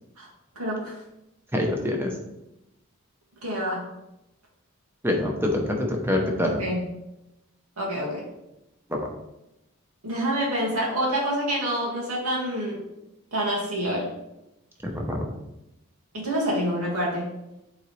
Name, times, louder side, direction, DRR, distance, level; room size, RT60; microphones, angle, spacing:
voice 1, 0.6-0.9 3.4-3.8 6.4-6.8 7.8-8.2 10.0-12.8 13.3-14.1 16.1-17.3, equal, 80° right, -4 dB, 2.3 m, -27 dB
voice 2, 1.5-2.2 5.0-6.6 8.9-9.1 14.8-15.3, left 1 dB, 10° right, 1 dB, 0.9 m, -25 dB
8.4 x 4.0 x 3.3 m, 0.91 s
head